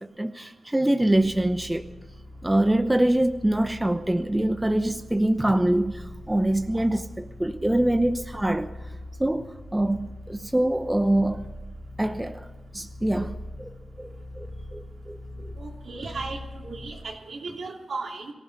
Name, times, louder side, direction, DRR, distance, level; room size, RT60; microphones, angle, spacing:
voice 1, 0.2-1.8 2.4-8.7 9.2-11.4 12.0-12.4 12.7-13.7 14.0-14.1 14.4-15.5, right 1 dB, 15° right, 0.9 m, -24 dB
sound 1, 1.0-17.1, left 1 dB, 40° left, 4.1 m, -42 dB
voice 2, 15.6-18.3, right 3 dB, 70° right, 3.1 m, -36 dB
23.0 x 15.0 x 4.1 m
cardioid pair, 70°, 0 cm